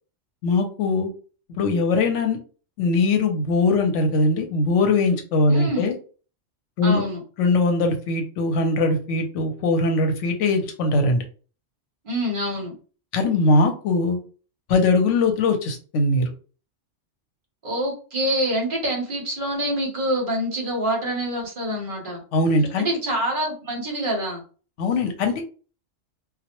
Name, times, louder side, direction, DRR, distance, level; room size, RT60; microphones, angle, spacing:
voice 1, 0.4-1.1 1.5-2.4 2.8-5.9 6.8-7.0 7.4-11.2 13.1-14.2 14.7-16.3 22.3-22.9 24.8-25.4, left 3 dB, 80° left, 4 dB, 0.9 m, -21 dB
voice 2, 5.5-5.9 6.8-7.2 12.0-12.8 17.6-22.2 22.8-24.4, right 1 dB, 50° right, 0 dB, 0.8 m, -26 dB
2.2 x 2.0 x 2.8 m, 0.38 s
omnidirectional pair, 1.2 m